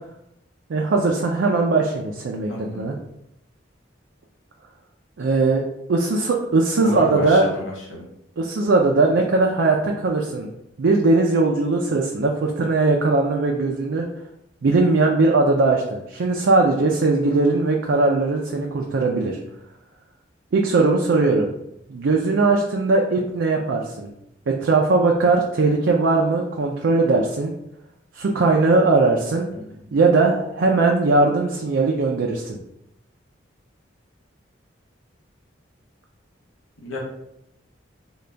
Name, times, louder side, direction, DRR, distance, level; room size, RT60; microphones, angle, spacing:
voice 1, 0.7-2.9 5.2-5.6 5.9-7.5 8.4-10.5 10.8-14.1 14.6-19.4 20.5-21.5 21.9-24.1 24.5-27.5 28.1-29.5 29.9-32.6, right 3 dB, 75° right, 0 dB, 0.4 m, -19 dB
voice 2, 2.5-2.9 6.8-8.0 36.8-37.0, left 1 dB, 90° left, -3 dB, 0.9 m, -31 dB
3.8 x 2.3 x 3.3 m, 0.80 s
head